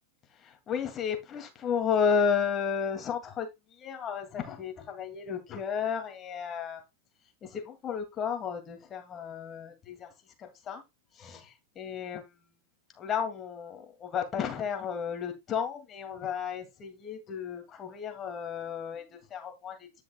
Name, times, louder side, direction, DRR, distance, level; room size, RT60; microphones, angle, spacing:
voice 1, 0.3-6.8 7.4-10.1 10.4-10.8 11.1-12.4 12.9-20.0, left 7 dB, 30° left, 2.3 m, -33 dB
10.5 x 6.1 x 2.3 m
hypercardioid pair, 110°, 0 cm